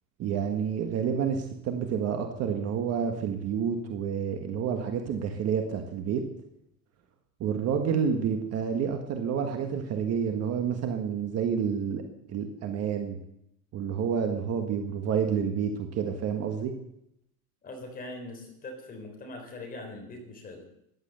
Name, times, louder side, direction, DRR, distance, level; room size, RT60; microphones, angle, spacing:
voice 1, 0.2-6.2 7.4-12.0 12.3-13.2 13.7-16.7, right 7 dB, 30° right, 5 dB, 1.5 m, -29 dB
voice 2, 17.6-20.6, left 2 dB, 20° left, 2 dB, 4.0 m, -41 dB
14.5 x 11.0 x 7.9 m, 0.78 s
supercardioid pair, 165°, 46 cm